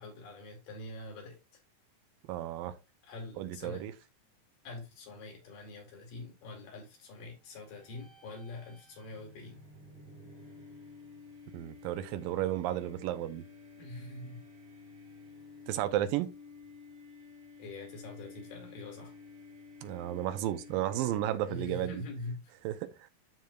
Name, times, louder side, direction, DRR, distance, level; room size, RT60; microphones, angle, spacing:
voice 1, 0.0-1.4 3.0-3.9 4.6-9.6 13.8-14.4 17.6-19.2 21.5-22.5, left 2 dB, 70° left, 4.2 m, -44 dB
voice 2, 2.3-2.8 3.4-3.9 11.5-13.4 15.7-16.3 19.8-22.0 22.6-22.9, right 13 dB, 85° right, 2.4 m, -33 dB
sound 1, 7.7-21.7, left 4 dB, 40° right, 1.8 m, -52 dB
12.5 x 4.6 x 2.4 m
omnidirectional pair, 4.1 m